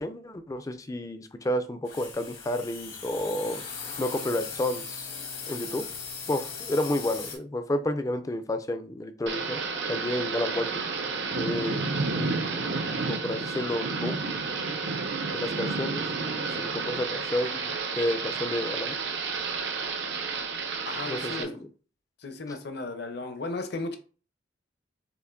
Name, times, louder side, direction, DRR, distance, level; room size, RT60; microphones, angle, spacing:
voice 1, 0.0-3.6 4.0-5.1 5.5-5.8 6.3-9.6 9.9-10.7 11.4-11.8 13.1-14.2 15.3-19.0 21.1-21.6, left 1 dB, 15° left, 0.3 m, -31 dB
sound 1, 1.8-7.4, left 5 dB, 85° left, 1.6 m, -39 dB
Thunder / Rain, 9.3-21.4, right 4 dB, 65° right, 0.7 m, -31 dB
voice 2, 20.9-21.6 22.2-24.0, left 3 dB, 60° left, 0.7 m, -35 dB
6.8 x 2.5 x 2.5 m
head